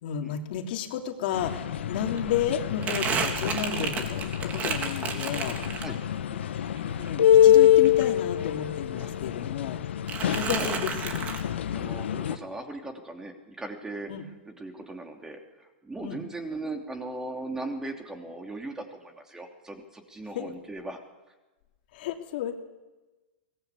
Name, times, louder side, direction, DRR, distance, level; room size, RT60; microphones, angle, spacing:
voice 1, 0.0-5.6 6.8-9.8 10.2-11.7 14.1-14.2 16.0-16.2 20.3-20.5 21.9-22.5, left 9 dB, 60° left, 3 dB, 3.3 m, -32 dB
sound 1, 1.3-12.4, left 11 dB, 80° left, 1.3 m, -25 dB
Crumpling crinkling, 1.4-1.5 1.8-6.2 6.6-8.7 9.0-9.8 10.1-11.4, right 5 dB, 25° right, 3.4 m, -33 dB
voice 2, 10.2-10.7 11.4-14.1 14.5-21.0, right 2 dB, 10° right, 4 dB, 2.9 m, -39 dB
23.0 x 19.5 x 8.3 m, 1.1 s
hypercardioid pair, 140°, 6 cm